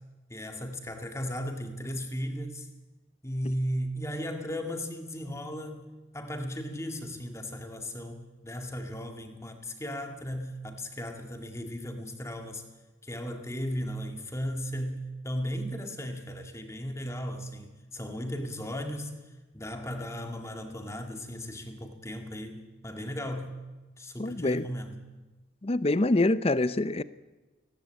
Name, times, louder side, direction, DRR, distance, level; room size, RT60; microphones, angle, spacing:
voice 1, 0.3-2.7 3.2-12.6 13.0-19.2 19.5-23.6 24.0-25.1, equal, 15° left, 5 dB, 2.0 m, -36 dB
voice 2, 24.2-24.6 25.6-27.0, left 2 dB, 30° left, 16 dB, 0.6 m, -25 dB
18.5 x 17.5 x 9.0 m, 1.2 s
head